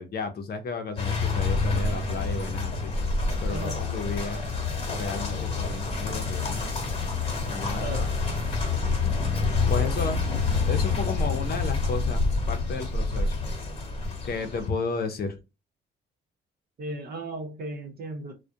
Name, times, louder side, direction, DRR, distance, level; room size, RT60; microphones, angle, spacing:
voice 1, 0.0-2.9 3.4-4.4 4.9-6.9 7.5-7.9 9.7-10.2 10.7-13.5 14.0-15.4, left 4 dB, 50° left, 0.6 m, -33 dB
sound 1, 1.0-14.7, left 4 dB, 30° left, 1.1 m, -27 dB
voice 2, 3.5-3.8 7.8-8.1 16.8-18.3, right 2 dB, 50° right, 0.8 m, -35 dB
2.3 x 2.2 x 2.6 m
cardioid pair, 90°, 20 cm